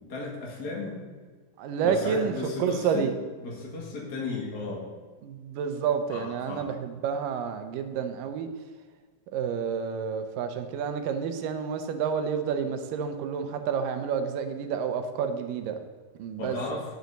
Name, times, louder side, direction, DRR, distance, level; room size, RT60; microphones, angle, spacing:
voice 1, 0.1-1.0 1.8-3.0 3.4-4.9 6.1-6.6 16.4-16.8, left 3 dB, 40° left, -3 dB, 1.4 m, -34 dB
voice 2, 1.6-2.3 2.6-3.1 5.2-8.5 9.3-15.8 16.2-16.6, right 7 dB, 75° right, 7 dB, 2.3 m, -29 dB
11.0 x 9.4 x 4.1 m, 1.5 s
omnidirectional pair, 4.4 m